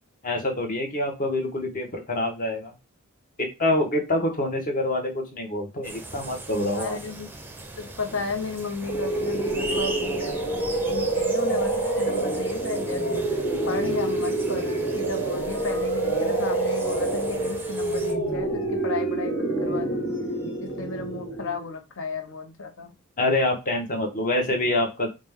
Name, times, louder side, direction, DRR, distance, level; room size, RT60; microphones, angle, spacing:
voice 1, 0.2-2.7 3.4-7.0 23.2-25.1, left 1 dB, 40° left, 3 dB, 1.0 m, -26 dB
sound 1, 5.8-18.1, right 2 dB, 10° right, 0.6 m, -39 dB
voice 2, 6.7-7.3 7.8-10.6 10.8-13.3 13.7-20.1 20.6-22.9, left 4 dB, 65° left, 6 dB, 0.8 m, -34 dB
sound 2, 8.9-21.7, right 2 dB, 20° left, 1.5 m, -27 dB
4.8 x 2.2 x 3.5 m, 0.26 s
head